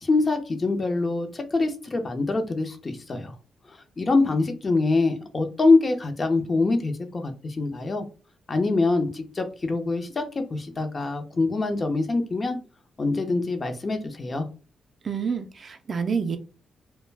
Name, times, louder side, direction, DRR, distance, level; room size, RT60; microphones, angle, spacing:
voice 1, 0.0-3.3 4.0-8.0 8.5-12.6 13.0-14.5, left 3 dB, 35° left, 6 dB, 0.5 m, -24 dB
voice 2, 15.0-16.4, right 6 dB, 50° right, 7 dB, 0.4 m, -28 dB
2.3 x 2.1 x 3.2 m, 0.35 s
cardioid pair, 85°, 0 cm